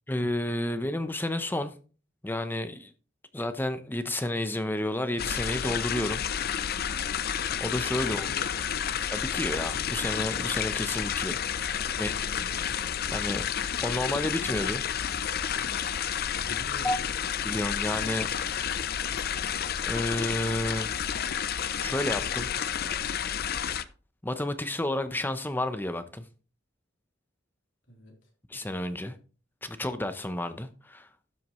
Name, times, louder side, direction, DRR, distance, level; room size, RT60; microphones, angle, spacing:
voice 1, 0.1-1.7 2.2-2.9 3.3-6.2 7.6-8.3 9.1-11.7 12.0-12.1 13.1-13.4 13.8-14.8 16.8-17.0 17.4-18.3 19.8-21.0 21.8-22.5 24.2-26.3 28.5-29.1 29.6-31.1, left 1 dB, 10° left, 0.7 m, -31 dB
sound 1, 5.2-23.8, left 8 dB, 50° left, 0.5 m, -30 dB
voice 2, 8.0-8.8 11.9-12.7 16.3-17.1 27.9-28.3, equal, 70° left, 3.5 m, -47 dB
12.5 x 7.9 x 3.1 m
head